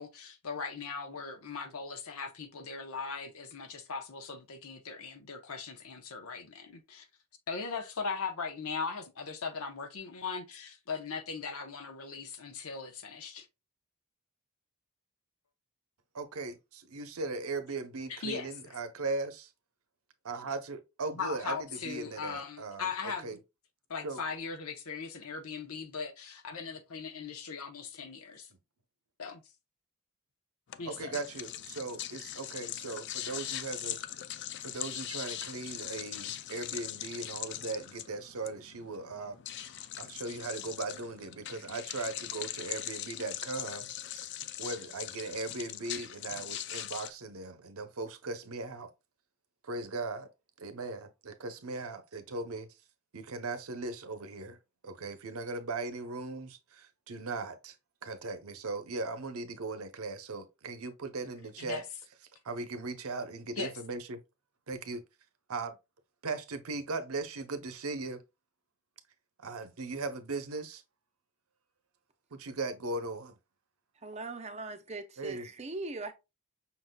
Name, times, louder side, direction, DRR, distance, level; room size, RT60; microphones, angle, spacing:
voice 1, 0.0-7.1 7.5-13.5 18.1-18.7 21.1-23.3 23.9-28.5 29.2-29.4 30.8-31.2 61.6-61.8 63.6-63.7, left 5 dB, 80° left, 0.9 m, -39 dB
voice 2, 16.1-19.5 20.2-22.9 23.2-23.4 24.0-24.2 30.9-34.0 34.6-39.6 40.0-43.9 44.6-48.9 49.6-50.3 50.6-52.7 53.1-54.6 54.8-57.7 58.0-61.8 62.4-64.2 64.7-65.0 65.5-65.8 66.2-68.2 69.4-70.8 72.3-73.3 75.2-75.4, right 3 dB, 80° right, 0.8 m, -38 dB
sound 1, 30.7-47.1, left 12 dB, 55° left, 0.3 m, -41 dB
voice 3, 74.0-76.1, right 2 dB, 30° right, 0.6 m, -40 dB
5.8 x 4.0 x 2.2 m
head